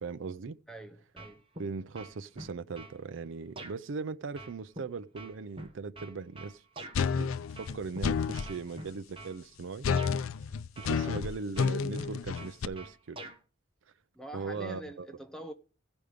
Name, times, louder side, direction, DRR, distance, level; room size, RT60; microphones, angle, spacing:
voice 1, 0.0-0.6 1.6-6.6 7.2-7.3 7.6-9.9 10.8-13.2 14.3-15.1, right 4 dB, 70° right, 0.5 m, -39 dB
voice 2, 0.7-1.4 10.9-11.2 14.1-15.5, right 1 dB, 5° left, 0.8 m, -45 dB
sound 1, 1.2-1.7 1.9-3.0 3.6-3.7 4.4-7.0 7.5-8.0 8.3-9.4 10.0-10.1 10.8-11.2 11.5-13.4, right 2 dB, 25° right, 1.2 m, -45 dB
sound 2, 6.9-8.5 9.8-12.6, left 5 dB, 90° left, 0.4 m, -30 dB
15.5 x 5.2 x 5.0 m
head